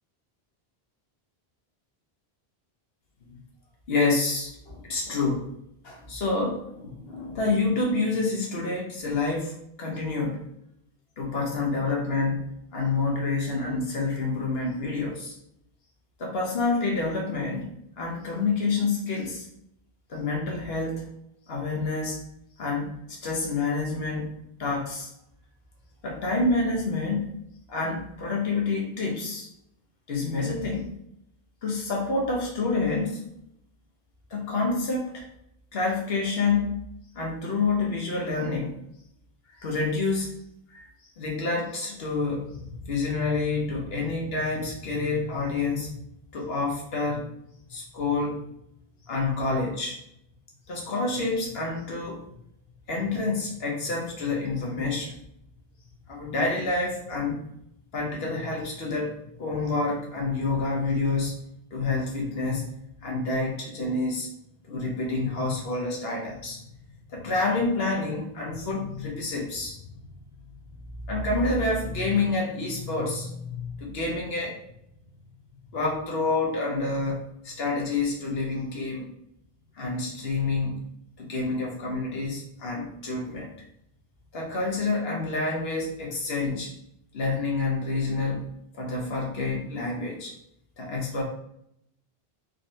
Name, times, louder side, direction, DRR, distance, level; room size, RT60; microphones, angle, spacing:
voice 1, 3.9-5.5 5.8-10.4 11.2-15.3 16.2-17.7 18.0-19.5 20.1-21.1 21.5-22.2 22.6-24.3 24.6-25.1 26.0-27.3 27.7-29.5 30.1-30.9 31.6-33.2 34.3-35.2 35.7-36.8 37.1-38.7 39.6-40.3 40.7-40.9 41.2-42.5 42.8-45.9 46.3-47.2 47.7-48.4 49.1-50.0 50.7-52.2 52.9-55.2 56.1-57.4 57.9-59.1 59.4-61.3 61.7-62.6 63.0-64.3 64.7-66.6 67.1-69.8 71.1-74.6 75.7-79.1 79.8-80.8 81.2-83.5 84.3-86.7 87.1-88.4 88.7-90.3 90.8-91.2, left 3 dB, 75° left, -1 dB, 1.2 m, -28 dB
4.1 x 3.2 x 2.7 m, 0.76 s
omnidirectional pair, 1.0 m